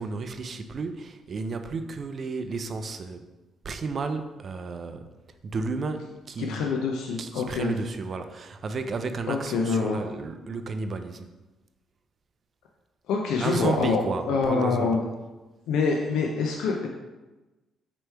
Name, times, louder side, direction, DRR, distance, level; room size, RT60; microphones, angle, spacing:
voice 1, 0.0-3.3 3.6-5.1 5.4-6.6 7.2-11.3 13.4-15.0, right 4 dB, 50° right, 8 dB, 0.4 m, -32 dB
voice 2, 6.4-7.7 9.3-10.0 13.1-14.0 14.3-15.0 15.7-16.9, left 4 dB, 90° left, 0 dB, 0.4 m, -25 dB
3.2 x 3.0 x 4.5 m, 1.1 s
cardioid pair, 90°, 0 cm